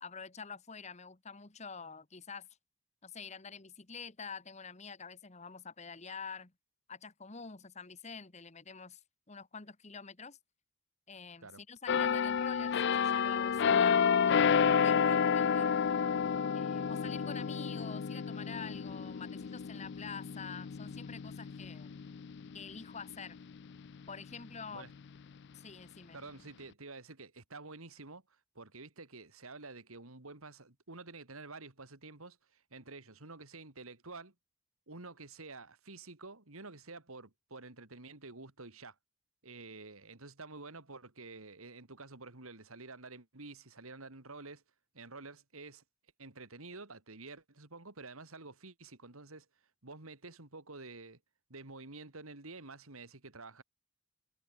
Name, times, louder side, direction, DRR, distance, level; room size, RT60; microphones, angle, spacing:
voice 1, 0.0-2.5 3.0-6.5 6.9-9.0 9.3-10.4 11.1-15.7 16.5-22.0 22.5-23.4 24.1-24.9 25.5-26.2, left 5 dB, 30° left, 1.3 m, -47 dB
sound 1, 11.9-23.4 23.9-24.1, left 6 dB, 55° left, 0.4 m, -30 dB
voice 2, 26.1-34.3 34.9-39.0 39.4-44.6 44.9-45.8 46.2-49.5 49.8-51.2 51.5-53.6, right 3 dB, 80° right, 2.8 m, -49 dB
head